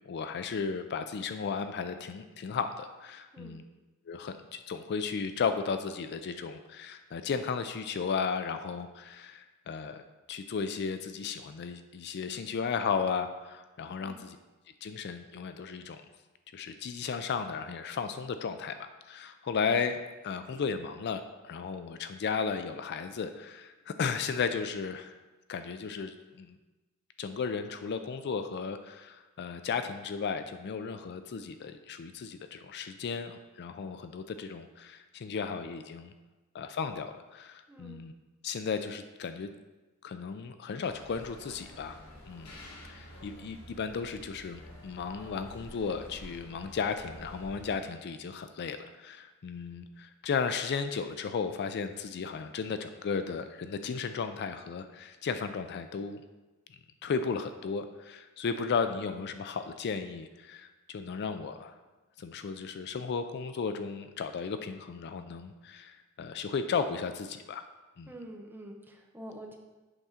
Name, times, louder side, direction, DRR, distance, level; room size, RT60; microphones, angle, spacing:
voice 1, 0.1-3.6 4.1-14.4 14.8-16.0 16.5-25.1 25.5-26.6 27.2-36.1 36.5-38.1 38.4-39.5 40.0-42.0 42.3-42.5 42.9-56.2 57.0-61.7 62.2-67.6 68.0-68.1, left 5 dB, 50° left, 9 dB, 0.4 m, -35 dB
voice 2, 37.7-38.0 68.1-69.6, right 1 dB, 10° right, 1 dB, 0.8 m, -46 dB
sound 1, 40.8-47.8, left 1 dB, 85° left, 1.6 m, -49 dB
8.1 x 3.6 x 5.6 m, 1.2 s
head